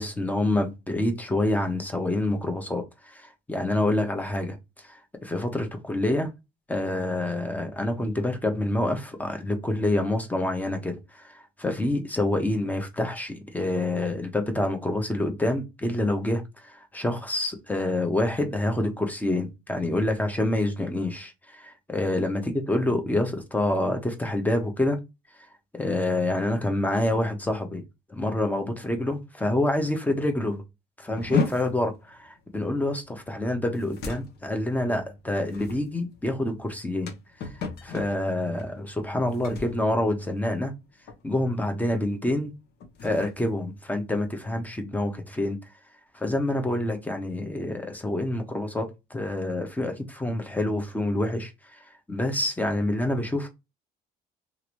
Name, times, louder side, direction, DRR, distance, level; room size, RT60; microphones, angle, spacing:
voice 1, 0.0-6.3 6.7-22.4 22.7-25.0 25.7-27.8 28.1-30.6 31.0-37.1 37.8-40.7 41.2-42.5 43.0-45.6 46.1-53.5, left 1 dB, 10° left, 0.8 m, -27 dB
sound 1, 31.2-40.8 41.1-41.5 41.8-42.1 42.7-44.6, left 5 dB, 75° left, 0.8 m, -36 dB
2.9 x 2.5 x 3.0 m
cardioid pair, 110°, 17 cm